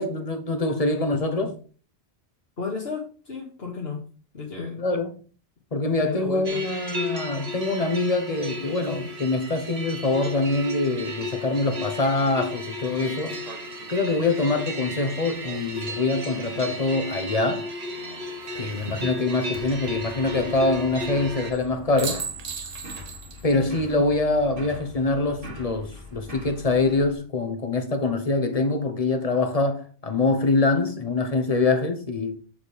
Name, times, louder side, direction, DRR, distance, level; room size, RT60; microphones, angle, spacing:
voice 1, 0.0-1.6 4.8-5.2 5.7-13.4 13.9-17.7 18.6-22.3 23.4-32.4, left 3 dB, 35° left, 1.1 m, -24 dB
voice 2, 2.6-4.0 4.3-4.8 6.0-6.6, left 4 dB, 75° left, 2.0 m, -33 dB
sound 1, 6.4-21.5, left 1 dB, 75° right, 1.8 m, -34 dB
sound 2, 13.0-16.3 18.1-18.7 21.5-21.7 22.0-23.5 23.8-23.9 26.3-26.8, right 6 dB, 40° right, 0.8 m, -39 dB
sound 3, 19.5-27.2, left 1 dB, 60° right, 2.0 m, -42 dB
7.3 x 7.1 x 3.4 m
omnidirectional pair, 1.1 m